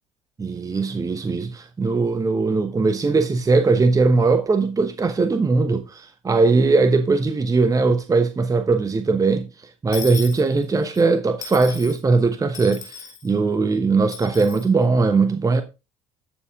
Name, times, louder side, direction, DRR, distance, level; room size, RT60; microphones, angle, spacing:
voice 1, 0.4-15.6, right 3 dB, 20° right, 1.0 m, -20 dB
Dishes pots and pans / Coin (dropping), 9.9-11.0 11.4-12.0 12.5-13.3 14.1-14.7, left 7 dB, 85° left, 2.3 m, -37 dB
12.5 x 6.8 x 3.6 m
hypercardioid pair, 65°, 16 cm